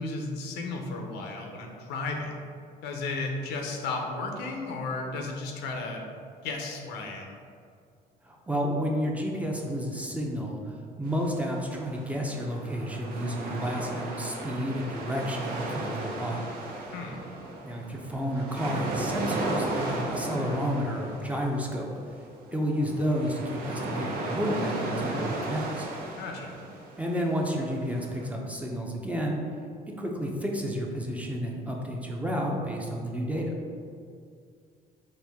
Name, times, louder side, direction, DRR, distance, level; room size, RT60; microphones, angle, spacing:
voice 1, 0.0-2.3 2.8-6.1 6.4-7.3 16.9-17.2 26.2-26.6, left 3 dB, 90° left, 2 dB, 0.6 m, -34 dB
voice 2, 8.2-16.5 17.6-21.9 22.5-25.9 27.0-29.4 30.0-33.5, equal, 10° right, -1 dB, 0.5 m, -31 dB
sound 1, 11.0-28.3, right 2 dB, 65° right, 0.7 m, -35 dB
4.3 x 2.6 x 3.5 m, 2.3 s
cardioid pair, 110°, 17 cm